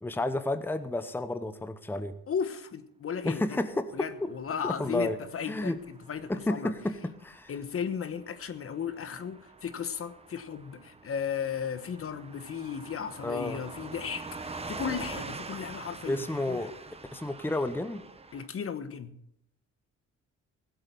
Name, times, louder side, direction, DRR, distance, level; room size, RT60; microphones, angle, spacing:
voice 1, 0.0-2.1 3.2-4.3 4.6-5.2 5.5-5.8 6.3-7.5 13.2-13.6 16.1-16.7 17.1-18.0, left 2 dB, 5° left, 0.9 m, -31 dB
voice 2, 2.3-3.6 3.9-6.7 7.5-16.7 18.3-19.2, left 7 dB, 50° left, 1.2 m, -35 dB
Car passing by / Truck, 4.1-18.5, right 3 dB, 20° right, 1.1 m, -45 dB
16.0 x 8.0 x 6.9 m
cardioid pair, 90°, 30 cm